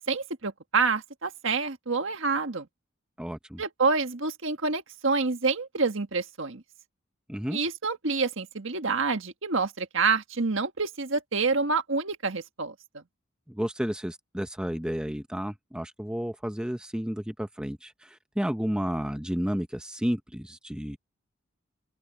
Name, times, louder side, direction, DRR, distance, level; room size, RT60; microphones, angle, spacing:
voice 1, 0.1-2.7 3.6-6.6 7.5-13.0, right 4 dB, 60° right, 1.6 m, -27 dB
voice 2, 3.2-3.6 7.3-7.6 13.5-21.0, equal, 5° right, 0.7 m, -32 dB
open air
head